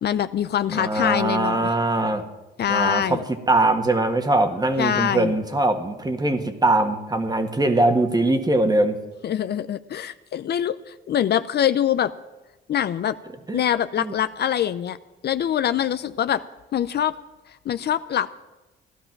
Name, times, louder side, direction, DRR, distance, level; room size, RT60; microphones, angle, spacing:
voice 1, 0.0-1.7 2.6-3.2 4.8-5.3 9.2-12.1 12.7-13.2 13.5-15.0 15.2-16.4 16.7-17.1 17.7-18.3, left 10 dB, 55° left, 13 dB, 0.6 m, -24 dB
voice 2, 0.7-2.2 2.7-3.2 3.5-9.0 13.5-13.6 14.0-14.1, right 2 dB, 20° right, 7 dB, 1.7 m, -21 dB
16.0 x 12.0 x 6.0 m, 1.1 s
cardioid pair, 90°, 20 cm